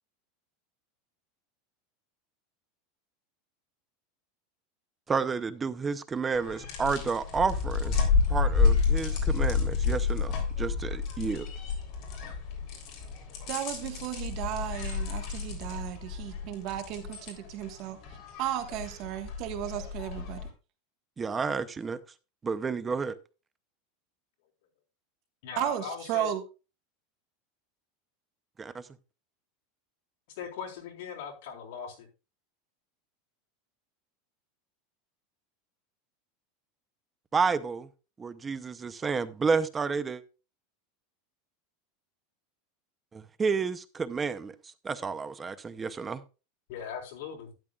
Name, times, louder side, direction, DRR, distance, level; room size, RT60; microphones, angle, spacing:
voice 1, 5.1-11.5 21.2-22.0 22.4-23.2 28.6-28.8 37.3-37.9 38.2-40.2 43.1-44.5 44.8-46.2, right 5 dB, 15° right, 0.6 m, -30 dB
sound 1, 6.3-20.5, left 5 dB, 45° left, 3.5 m, -30 dB
voice 2, 13.5-18.0 18.4-20.4 25.6-26.4, right 12 dB, 50° right, 1.5 m, -34 dB
voice 3, 25.4-26.3 30.3-32.1 46.7-47.5, left 7 dB, 70° left, 3.9 m, -39 dB
12.5 x 10.5 x 2.4 m
supercardioid pair, 145°, 0 cm